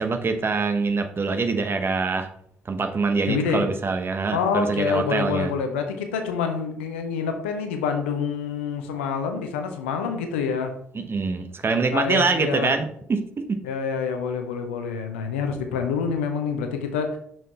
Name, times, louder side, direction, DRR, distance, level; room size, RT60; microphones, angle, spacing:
voice 1, 0.0-2.3 2.6-5.5 10.9-13.6, right 4 dB, 40° right, 7 dB, 0.9 m, -24 dB
voice 2, 3.3-3.7 4.3-10.7 11.9-12.8 13.6-17.2, left 6 dB, 80° left, 6 dB, 0.8 m, -27 dB
6.4 x 4.5 x 4.2 m, 0.68 s
figure-of-eight pair, 45°, 6 cm